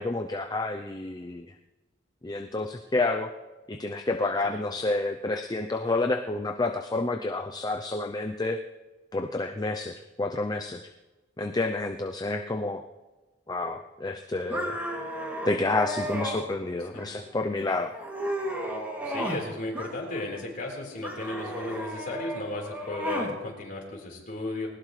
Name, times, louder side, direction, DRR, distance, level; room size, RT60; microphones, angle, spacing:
voice 1, 0.0-1.5 2.2-3.3 3.7-8.6 9.1-10.9 11.4-12.8 13.5-14.8 15.4-17.9, left 2 dB, 20° left, 5 dB, 0.6 m, -29 dB
sound 1, 14.5-16.4 16.9-17.5 17.9-19.5 19.7-20.4 21.0-23.4, equal, 10° right, 2.6 m, -34 dB
voice 2, 19.0-24.7, left 2 dB, 45° left, -1 dB, 4.3 m, -35 dB
20.5 x 19.0 x 3.3 m, 1.2 s
head